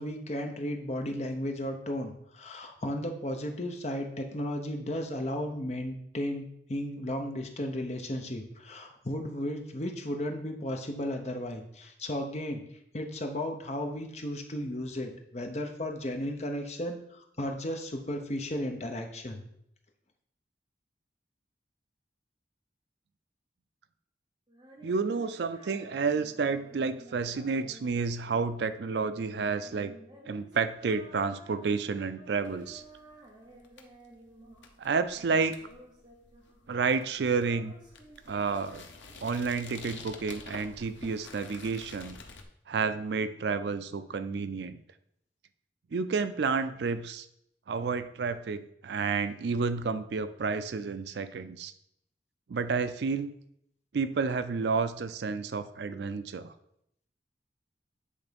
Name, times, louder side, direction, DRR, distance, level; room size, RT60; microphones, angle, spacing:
voice 1, 0.0-12.6 12.9-19.4, left 1 dB, 35° left, 4 dB, 0.8 m, -34 dB
Female singing, 24.5-34.8 35.1-36.8 37.0-39.7, right 1 dB, 25° right, 1.2 m, -54 dB
voice 2, 24.8-29.9 30.3-32.8 34.8-35.6 36.7-37.7 38.3-38.9 39.2-42.2 42.7-44.8 45.9-47.3 47.7-51.7 52.5-53.3 53.9-56.5, right 5 dB, 70° right, 12 dB, 0.4 m, -30 dB
sound 1, 32.4-42.4, left 4 dB, 90° left, 0.9 m, -50 dB
8.3 x 3.5 x 5.2 m, 0.74 s
head